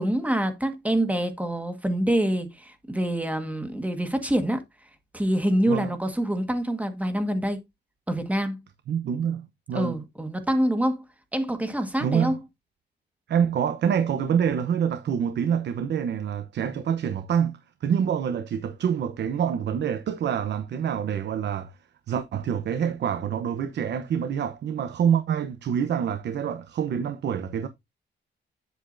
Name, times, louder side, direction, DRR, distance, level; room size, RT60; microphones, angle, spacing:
voice 1, 0.0-4.6 5.1-7.6 8.1-8.6 9.7-11.0 11.3-12.3, right 1 dB, 10° right, 1.6 m, -26 dB
voice 2, 8.9-10.0 12.0-12.4 13.3-21.7 22.1-27.7, right 8 dB, 70° right, 0.9 m, -26 dB
8.8 x 8.2 x 2.6 m
wide cardioid pair, 140°, 18 cm